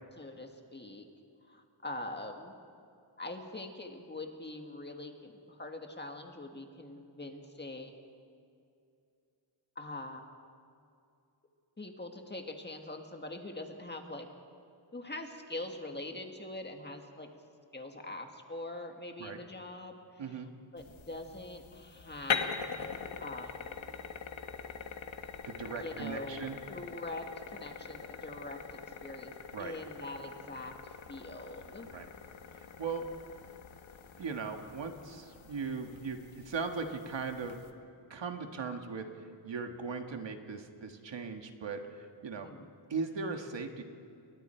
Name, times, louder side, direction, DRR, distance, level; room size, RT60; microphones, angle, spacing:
voice 1, 0.2-1.1 1.5-2.5 3.2-7.9 9.7-10.2 11.8-14.3 14.9-17.3 17.7-20.4 20.7-22.5 22.8-23.6 25.8-29.3 29.6-30.7 31.1-31.9 42.4-42.7, left 2 dB, 20° left, 4 dB, 1.7 m, -43 dB
sound 1, 20.8-37.7, left 6 dB, 70° left, 1.5 m, -43 dB
voice 2, 25.5-26.6 29.5-29.7 31.9-32.0 32.6-33.0 34.2-37.6 38.1-42.5 42.9-43.8, right 5 dB, 60° right, 5 dB, 1.7 m, -38 dB
29.5 x 22.5 x 4.5 m, 2.5 s
wide cardioid pair, 150°, 48 cm